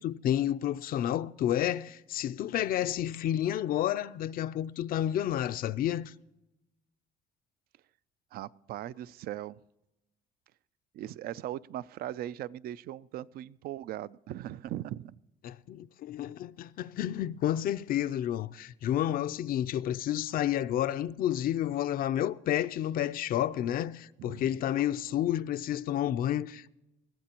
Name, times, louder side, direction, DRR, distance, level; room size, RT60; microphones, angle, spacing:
voice 1, 0.0-6.1 15.4-26.7, left 11 dB, 60° left, 0.5 m, -30 dB
voice 2, 8.3-9.6 10.9-15.1 24.3-24.6, right 13 dB, 65° right, 0.4 m, -39 dB
21.0 x 15.0 x 2.9 m
cardioid pair, 110°, 17 cm